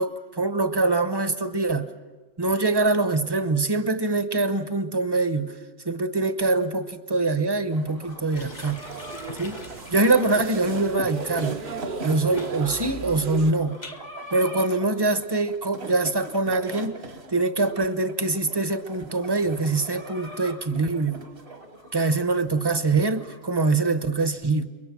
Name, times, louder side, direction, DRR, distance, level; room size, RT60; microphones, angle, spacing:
voice 1, 0.0-1.9 2.4-5.5 5.8-8.8 9.4-9.6 9.9-11.6 12.0-13.8 14.3-17.0 17.3-21.2 21.9-24.7, right 3 dB, 25° right, 10 dB, 1.0 m, -24 dB
sound 1, 7.7-23.5, right 2 dB, 65° right, 2.0 m, -42 dB
sound 2, 8.0-14.0, left 3 dB, 40° left, 1.2 m, -45 dB
sound 3, 8.4-13.5, right 5 dB, 50° right, 1.1 m, -36 dB
29.0 x 23.0 x 6.1 m, 1.3 s
omnidirectional pair, 1.2 m